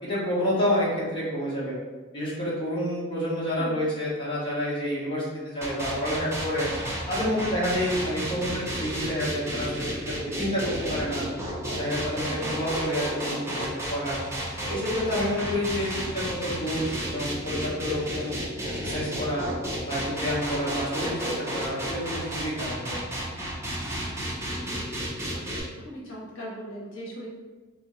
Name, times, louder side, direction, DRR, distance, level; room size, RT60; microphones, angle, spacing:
voice 1, 0.0-1.7 2.1-6.7 7.1-11.2 11.7-14.2 14.6-15.9 16.1-19.5 19.9-23.0, equal, 25° left, -8 dB, 1.1 m, -29 dB
sound 1, 5.6-25.6, equal, 15° right, 0.7 m, -32 dB
voice 2, 12.3-12.6 24.6-24.9 25.3-25.5 25.8-27.3, equal, 70° left, -5 dB, 1.0 m, -40 dB
3.5 x 3.1 x 3.0 m, 1.3 s
head